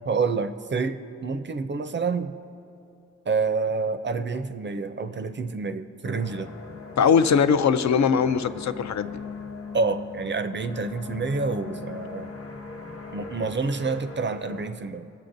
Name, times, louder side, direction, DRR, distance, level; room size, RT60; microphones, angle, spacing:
voice 1, 0.0-2.4 3.3-6.5 9.7-12.4 13.1-15.1, right 4 dB, 40° right, 9 dB, 0.4 m, -28 dB
sound 1, 6.0-14.7, left 4 dB, 50° left, 0.9 m, -39 dB
voice 2, 7.0-9.2, left 6 dB, 70° left, 11 dB, 0.4 m, -21 dB
22.0 x 7.5 x 2.6 m, 2.7 s
wide cardioid pair, 115°, 29 cm